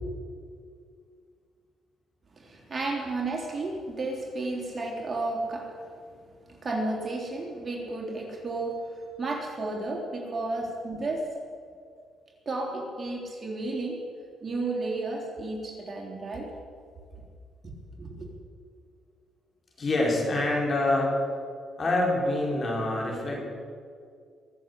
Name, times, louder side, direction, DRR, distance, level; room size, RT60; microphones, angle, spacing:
voice 1, 2.4-5.7 6.6-8.8 9.2-11.3 12.4-14.0 14.4-16.5 18.0-18.3, right 2 dB, 30° right, -1 dB, 3.4 m, -32 dB
voice 2, 19.8-21.1 21.8-23.4, left 2 dB, 40° left, -2 dB, 4.9 m, -26 dB
22.5 x 7.6 x 8.3 m, 2.2 s
cardioid pair, 90°, 0 cm